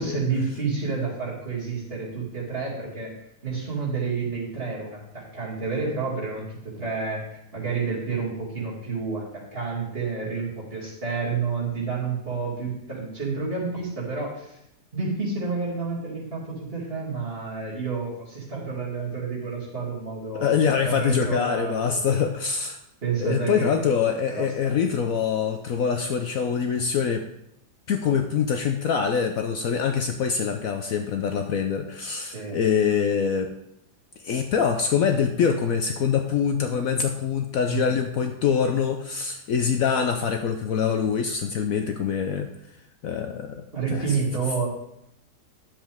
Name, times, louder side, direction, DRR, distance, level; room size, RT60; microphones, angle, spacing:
voice 1, 0.0-3.1 3.4-14.6 14.9-20.5 20.8-22.2 23.0-23.7 24.3-24.8 32.3-32.6 37.7-37.9 43.7-44.7, right 4 dB, 35° right, -6 dB, 2.8 m, -30 dB
voice 2, 20.3-22.8 23.2-27.3 27.9-33.5 34.2-42.5 43.0-43.6 43.9-44.2, left 7 dB, 65° left, 5 dB, 0.9 m, -24 dB
10.5 x 7.3 x 3.5 m, 0.78 s
omnidirectional pair, 1.8 m